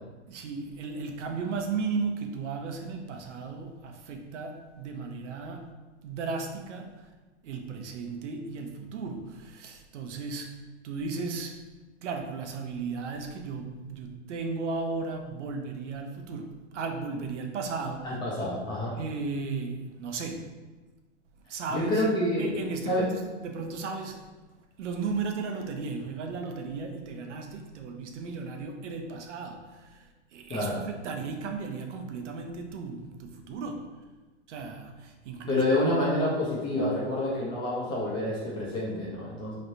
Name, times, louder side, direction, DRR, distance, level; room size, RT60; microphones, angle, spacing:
voice 1, 0.3-5.7 6.0-7.1 7.4-11.6 12.0-18.2 18.9-20.5 21.5-22.0 22.4-24.3 24.8-33.9 34.5-35.6, right 4 dB, 75° right, 3 dB, 0.8 m, -35 dB
voice 2, 18.0-18.9 21.7-23.1 30.5-30.8 35.5-39.5, left 1 dB, 15° left, -6 dB, 0.5 m, -28 dB
4.2 x 3.2 x 2.6 m, 1.2 s
supercardioid pair, 155°, 36 cm